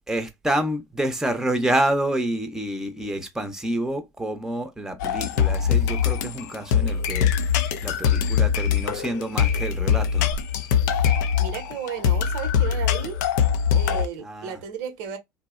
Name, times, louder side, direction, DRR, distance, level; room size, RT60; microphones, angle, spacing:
voice 1, 0.1-7.3 7.8-10.4 14.2-14.6, right 1 dB, 5° right, 0.6 m, -28 dB
sound 1, 5.0-14.1, left 8 dB, 75° left, 0.4 m, -22 dB
voice 2, 11.4-13.2 13.7-15.2, right 7 dB, 70° right, 0.7 m, -34 dB
2.7 x 2.0 x 2.3 m
hypercardioid pair, 70°, 10 cm